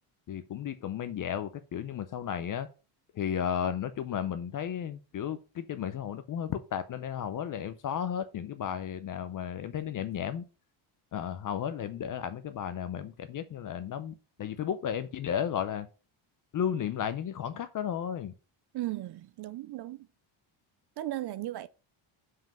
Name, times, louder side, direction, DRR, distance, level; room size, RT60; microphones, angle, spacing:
voice 1, 0.3-2.7 3.1-10.4 11.1-15.9 16.5-18.3, left 9 dB, 40° left, 0.6 m, -34 dB
voice 2, 18.7-20.1 21.0-21.7, right 15 dB, 55° right, 0.5 m, -36 dB
5.7 x 5.3 x 5.1 m
cardioid pair, 160°, 49 cm